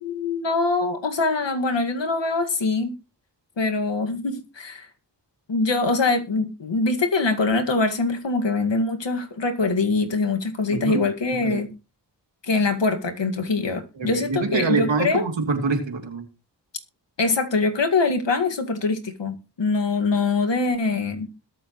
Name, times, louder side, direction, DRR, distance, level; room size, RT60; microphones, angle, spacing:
voice 1, 0.0-3.0 3.6-4.9 5.5-11.7 12.4-15.2 17.2-21.5, left 3 dB, 75° left, 2.1 m, -23 dB
voice 2, 10.7-11.1 11.4-11.6 13.9-16.2, right 4 dB, 85° right, 2.9 m, -25 dB
21.5 x 7.7 x 3.1 m
cardioid pair, 50°, 43 cm